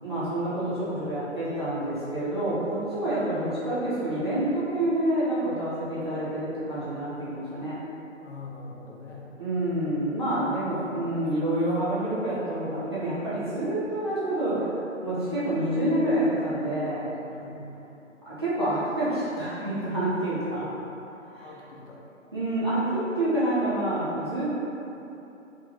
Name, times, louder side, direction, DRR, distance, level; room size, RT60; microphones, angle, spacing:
voice 1, 0.0-7.8 9.4-14.7 15.0-17.1 18.3-20.7 21.3-21.5 22.3-24.5, right 1 dB, 20° right, -13 dB, 0.4 m, -27 dB
voice 2, 8.2-9.4 10.0-10.6 11.2-11.3 17.3-17.7 21.4-22.0 22.8-23.3, left 3 dB, 65° left, -3 dB, 0.7 m, -44 dB
3.3 x 2.1 x 3.2 m, 2.9 s
figure-of-eight pair, 140°, 39 cm